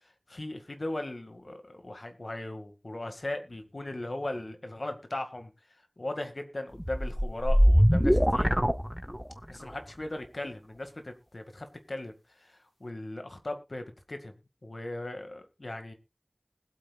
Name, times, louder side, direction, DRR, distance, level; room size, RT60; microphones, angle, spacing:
voice 1, 0.0-5.5 6.0-8.5 9.5-14.3 14.6-15.9, left 1 dB, 75° left, 7 dB, 2.0 m, -38 dB
sound 1, 6.8-9.5, equal, ahead, 0.7 m, -23 dB
20.5 x 8.4 x 2.4 m, 0.28 s
wide cardioid pair, 40°, 0 cm